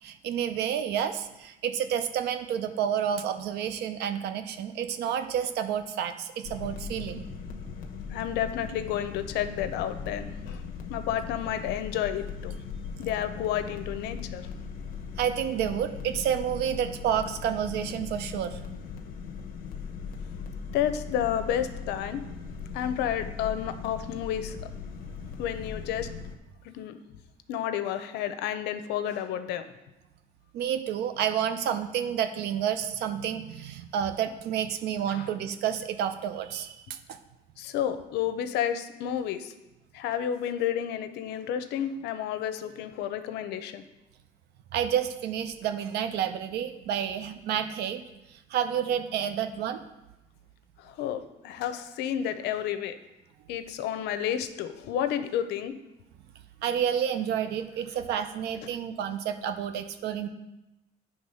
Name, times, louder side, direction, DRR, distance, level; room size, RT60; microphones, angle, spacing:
voice 1, 0.0-7.3 15.2-18.6 30.5-37.2 44.7-48.0 48.3-49.8 56.6-60.3, right 9 dB, 75° right, 9 dB, 0.6 m, -30 dB
sound 1, 6.4-26.4, left 6 dB, 55° left, 0.9 m, -39 dB
voice 2, 8.1-10.6 10.9-12.6 13.0-14.5 20.7-22.2 22.7-24.6 25.4-26.1 26.6-27.0 27.5-29.6 35.1-35.3 37.6-39.5 39.9-43.8 50.8-53.0 53.5-55.8, left 10 dB, 85° left, 10 dB, 0.6 m, -31 dB
8.6 x 3.4 x 5.5 m, 0.98 s
cardioid pair, 110°, 17 cm